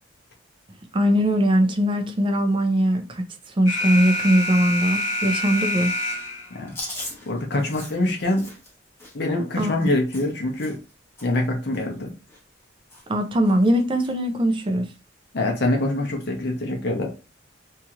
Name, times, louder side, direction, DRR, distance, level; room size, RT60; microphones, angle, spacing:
voice 1, 0.9-3.2 3.6-5.9 9.6-9.9 13.1-14.8, equal, 25° right, 0.4 m, -21 dB
Alarm, 3.7-6.6, left 1 dB, 75° left, 1.2 m, -26 dB
Chewing mastication, 6.7-10.9 11.2-11.5 11.7-12.6 12.9-13.2 13.5-14.1 14.6-14.7 15.8-16.2, left 1 dB, 15° left, 0.9 m, -40 dB
voice 2, 7.3-8.5 9.1-10.8 11.2-12.1 15.3-17.1, left 1 dB, 60° left, 0.7 m, -24 dB
2.7 x 2.4 x 2.8 m
head